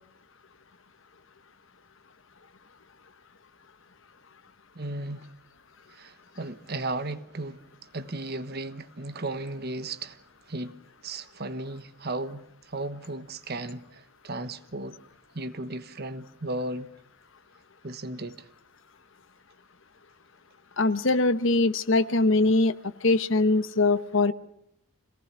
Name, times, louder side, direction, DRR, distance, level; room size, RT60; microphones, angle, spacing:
voice 1, 4.7-5.3 5.9-15.0 15.3-16.9 17.8-18.5, right 2 dB, 45° right, 1.3 m, -35 dB
voice 2, 20.8-22.7 23.0-24.3, left 2 dB, 60° left, 1.0 m, -22 dB
26.5 x 18.0 x 6.1 m
head